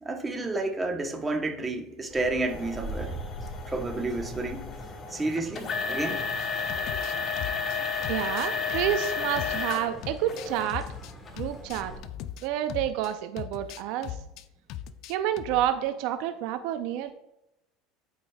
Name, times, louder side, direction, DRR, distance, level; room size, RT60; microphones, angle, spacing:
voice 1, 0.0-3.2 3.7-4.7 5.1-6.2, right 2 dB, 15° right, 4 dB, 1.0 m, -30 dB
sound 1, 2.1-12.0, equal, 15° left, 1.3 m, -42 dB
sound 2, 2.5-9.9 10.3-10.7 11.3-11.4 12.0-12.1, left 5 dB, 35° left, 1.0 m, -32 dB
sound 3, 6.4-13.1 13.4-14.4 14.7-15.7, left 11 dB, 60° left, 0.4 m, -39 dB
voice 2, 8.1-10.9 11.3-11.9 12.4-14.2 15.1-17.1, right 11 dB, 65° right, 9 dB, 0.5 m, -29 dB
12.0 x 4.7 x 2.3 m, 0.84 s
supercardioid pair, 110°, 0 cm